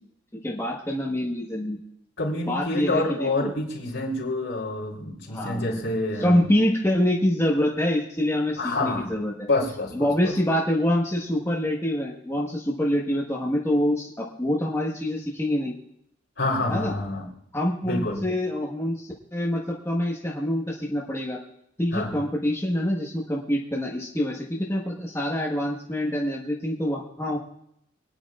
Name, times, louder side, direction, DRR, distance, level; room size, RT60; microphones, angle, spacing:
voice 1, 0.3-1.8 2.5-3.5 5.3-5.7 6.2-9.3 9.9-15.7 16.7-16.9 17.5-21.4 21.8-27.4, left 1 dB, 15° left, -3 dB, 1.3 m, -26 dB
voice 2, 2.2-6.5 8.6-9.1 9.5-10.3 16.4-17.2 17.8-18.2 21.9-22.1, left 2 dB, 70° left, -2 dB, 3.7 m, -27 dB
25.0 x 9.8 x 2.4 m, 0.76 s
head